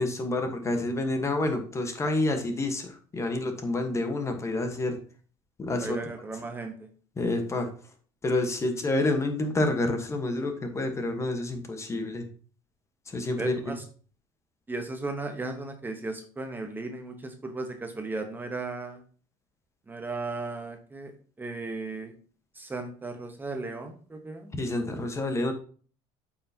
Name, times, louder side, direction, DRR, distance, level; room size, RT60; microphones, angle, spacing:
voice 1, 0.0-5.0 5.6-6.0 7.2-7.7 8.2-12.3 13.1-13.7 24.5-25.5, left 2 dB, 20° left, 6 dB, 1.1 m, -28 dB
voice 2, 5.8-6.9 13.4-13.8 14.7-19.0 19.9-21.1 21.4-22.1 22.5-24.5, right 3 dB, 15° right, 5 dB, 0.9 m, -36 dB
8.5 x 5.7 x 2.8 m, 0.42 s
cardioid pair, 120°, 13 cm